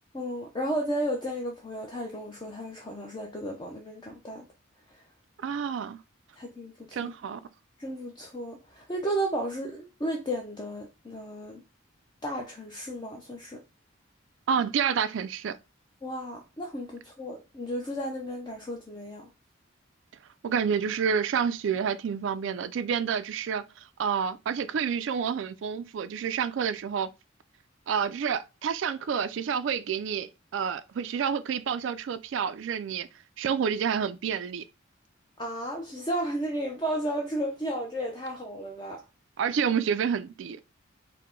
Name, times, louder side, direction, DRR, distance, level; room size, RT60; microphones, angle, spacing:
voice 1, 0.1-4.4 4.9-5.0 6.4-7.1 7.8-11.6 12.2-13.6 16.0-19.2 35.4-39.0, right 1 dB, 20° left, 0.5 m, -33 dB
voice 2, 5.4-6.0 6.9-7.4 14.5-15.6 20.4-27.1 27.9-33.1 33.4-34.6 39.4-40.6, right 7 dB, 65° right, 0.3 m, -29 dB
4.5 x 2.1 x 3.7 m
head